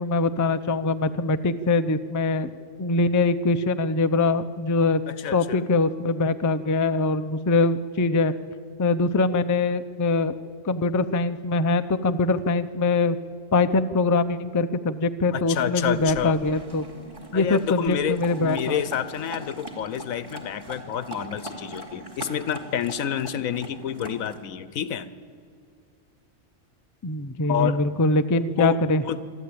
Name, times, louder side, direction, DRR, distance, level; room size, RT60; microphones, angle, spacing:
voice 1, 0.0-2.5 2.8-5.0 5.3-8.3 8.8-10.3 10.6-13.2 13.5-16.8 17.3-18.8 27.0-29.0, left 3 dB, 30° left, 10 dB, 0.3 m, -23 dB
voice 2, 5.1-5.6 15.3-16.3 17.3-25.1 27.5-27.8 28.6-28.8 29.1-29.2, left 9 dB, 90° left, 14 dB, 1.2 m, -29 dB
sound 1, 15.8-24.4, right 1 dB, 25° right, 2.6 m, -41 dB
26.0 x 12.0 x 8.6 m, 2.5 s
omnidirectional pair, 1.4 m